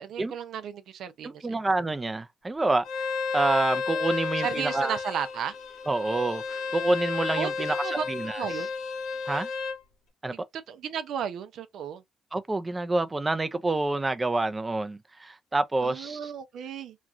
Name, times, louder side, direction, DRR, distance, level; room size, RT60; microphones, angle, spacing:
voice 1, 0.0-1.6 4.4-5.5 7.4-7.5 7.8-8.0 8.4-8.7 10.3-12.0 15.8-17.0, right 8 dB, 75° right, 0.5 m, -34 dB
voice 2, 1.2-2.8 3.3-5.0 5.9-7.8 8.1-8.6 9.3-9.5 10.2-10.3 12.3-16.3, right 2 dB, 20° right, 0.5 m, -27 dB
Bowed string instrument, 2.8-9.8, left 5 dB, 90° left, 1.3 m, -32 dB
3.0 x 2.4 x 2.5 m
cardioid pair, 90°, 0 cm